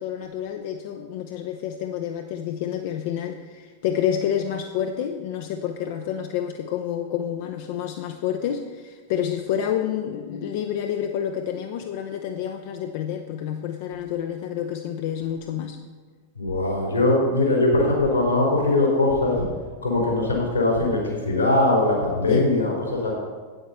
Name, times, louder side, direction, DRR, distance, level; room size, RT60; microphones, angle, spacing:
voice 1, 0.0-15.8 22.3-22.5, left 9 dB, 50° left, 6 dB, 0.6 m, -28 dB
voice 2, 16.4-19.4 19.8-23.1, left 2 dB, 80° left, -2 dB, 3.3 m, -21 dB
8.9 x 8.0 x 5.5 m, 1.5 s
figure-of-eight pair, 90°, 0 cm